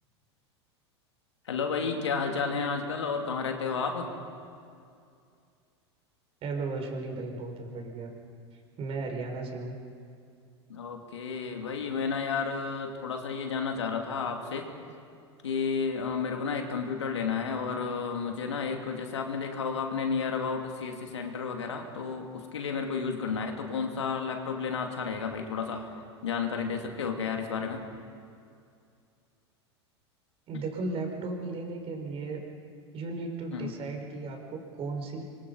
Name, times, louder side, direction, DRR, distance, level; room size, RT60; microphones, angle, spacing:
voice 1, 1.4-4.1 10.7-14.7 15.4-25.8 26.2-27.8 33.5-33.7, left 5 dB, 85° left, 3 dB, 2.7 m, -32 dB
voice 2, 6.4-8.1 8.8-9.8 30.5-32.4 32.9-35.2, right 3 dB, 40° right, 2 dB, 5.7 m, -35 dB
25.5 x 23.5 x 5.7 m, 2.3 s
hypercardioid pair, 90°, 15 cm